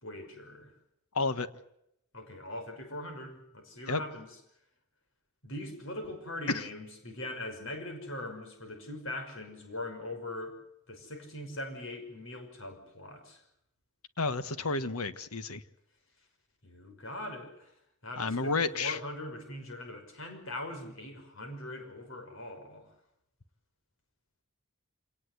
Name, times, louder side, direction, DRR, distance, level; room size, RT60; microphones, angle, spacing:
voice 1, 0.0-0.7 2.1-4.3 5.4-10.6 10.9-13.4 16.6-17.7 18.0-22.9, left 1 dB, 60° left, 6 dB, 5.8 m, -41 dB
voice 2, 1.1-1.5 3.9-4.0 6.5-6.6 14.2-15.6 18.2-19.0, left 3 dB, 85° left, 13 dB, 1.5 m, -31 dB
26.5 x 19.0 x 8.1 m, 0.79 s
head